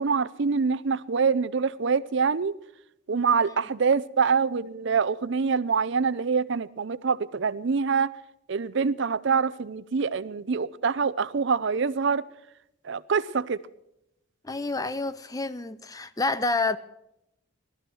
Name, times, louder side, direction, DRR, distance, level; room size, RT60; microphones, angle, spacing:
voice 1, 0.0-2.5 3.1-8.1 8.5-12.2 12.8-13.6, right 5 dB, 65° right, 0.6 m, -25 dB
voice 2, 14.4-16.8, left 3 dB, 20° left, 0.6 m, -28 dB
18.0 x 13.0 x 6.2 m
head